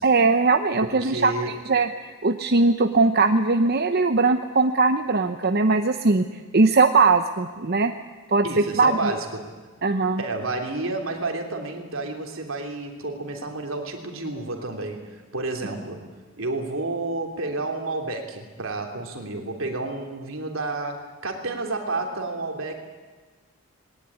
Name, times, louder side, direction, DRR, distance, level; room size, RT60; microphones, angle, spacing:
voice 1, 0.0-1.3 1.7-1.9 2.2-6.2 6.5-7.9 8.3-8.4 8.8-9.1 9.8-10.2, right 3 dB, 50° right, 7 dB, 0.8 m, -20 dB
voice 2, 0.8-1.6 8.4-9.5 10.2-16.1 16.4-22.8, right 2 dB, 75° right, 3 dB, 3.2 m, -30 dB
20.5 x 18.5 x 9.7 m, 1.3 s
head